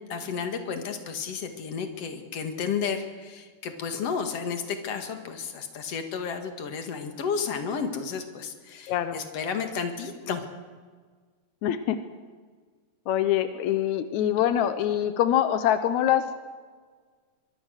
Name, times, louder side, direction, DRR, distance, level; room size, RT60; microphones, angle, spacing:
voice 1, 0.1-10.5, left 6 dB, 50° left, 6 dB, 2.5 m, -32 dB
voice 2, 8.9-9.2 11.6-12.0 13.1-16.4, left 10 dB, 80° left, 10 dB, 1.6 m, -24 dB
23.5 x 23.5 x 6.5 m, 1.5 s
omnidirectional pair, 4.6 m